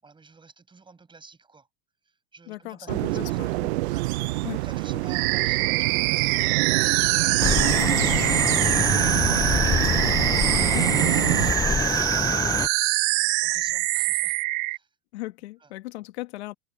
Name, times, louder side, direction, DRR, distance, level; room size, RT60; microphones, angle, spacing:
voice 1, 0.0-1.7 2.0-9.9 11.2-14.4 14.7-14.9 15.6-15.7, right 4 dB, 15° right, 6.5 m, -51 dB
voice 2, 2.5-3.7 4.4-4.6 10.6-11.3 15.1-16.5, left 18 dB, 75° left, 1.7 m, -37 dB
sound 1, 2.9-11.5, right 19 dB, 75° right, 0.6 m, -27 dB
sound 2, 5.1-14.8, right 24 dB, 55° right, 1.3 m, -24 dB
sound 3, 7.4-12.7, left 6 dB, 10° left, 0.4 m, -26 dB
supercardioid pair, 120°, 33 cm